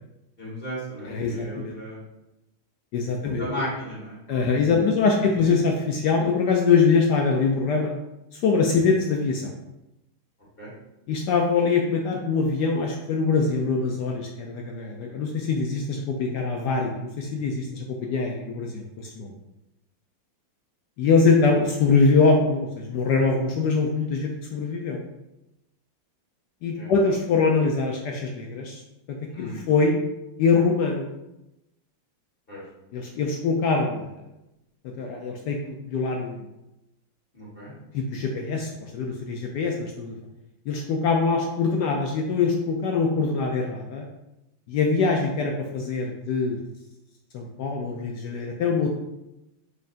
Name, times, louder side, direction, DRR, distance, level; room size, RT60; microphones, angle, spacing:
voice 1, 0.4-2.0 3.4-4.2 4.5-4.6 8.7-8.8 10.6-10.7 26.8-26.9 29.3-29.6 32.5-32.6 37.3-37.7, equal, 30° left, -7 dB, 1.6 m, -35 dB
voice 2, 1.0-1.8 2.9-3.5 4.3-7.9 8.3-9.6 11.1-19.4 21.0-25.0 26.6-28.8 29.1-30.0 30.4-31.1 32.9-34.1 35.0-36.4 37.9-40.2 40.7-44.0 44.7-46.6 47.3-49.0, left 4 dB, 75° left, 1 dB, 1.0 m, -23 dB
5.4 x 3.9 x 2.5 m, 0.93 s
omnidirectional pair, 2.2 m